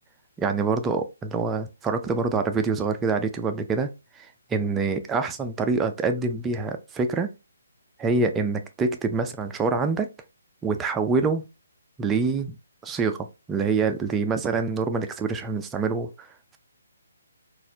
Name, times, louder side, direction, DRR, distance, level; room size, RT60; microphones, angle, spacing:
voice 1, 0.4-3.9 4.2-7.3 8.0-10.1 10.6-11.5 12.0-12.6 12.8-16.3, right 4 dB, 10° right, 0.4 m, -26 dB
4.0 x 2.4 x 2.6 m
figure-of-eight pair, 140°, 0 cm